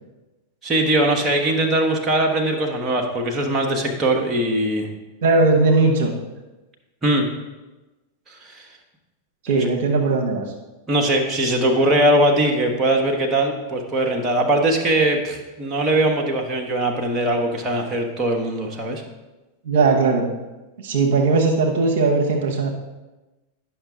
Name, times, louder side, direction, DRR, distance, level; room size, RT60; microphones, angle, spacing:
voice 1, 0.6-4.9 7.0-7.3 8.3-8.7 9.5-9.7 10.9-19.0, right 1 dB, 20° right, 1 dB, 1.1 m, -21 dB
voice 2, 5.2-6.1 9.4-10.4 19.6-20.3 20.8-22.7, right 3 dB, 55° right, 1 dB, 1.0 m, -18 dB
10.0 x 5.8 x 3.7 m, 1.1 s
figure-of-eight pair, 90°, 0 cm